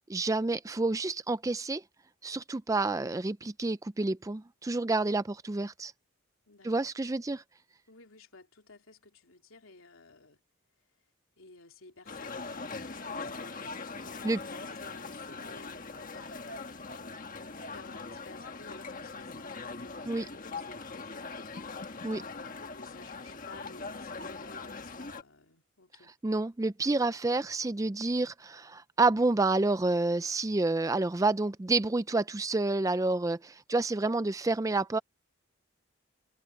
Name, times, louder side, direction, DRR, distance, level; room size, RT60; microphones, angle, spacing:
voice 1, 0.1-1.8 2.2-5.9 6.6-7.4 14.2-14.4 20.1-20.2 22.0-22.2 26.2-35.0, right 2 dB, 15° right, 0.4 m, -29 dB
voice 2, 6.5-6.9 7.9-10.4 11.4-21.3 22.1-26.1, left 3 dB, 80° left, 3.1 m, -55 dB
sound 1, 12.1-25.2, left 4 dB, 40° left, 1.5 m, -41 dB
head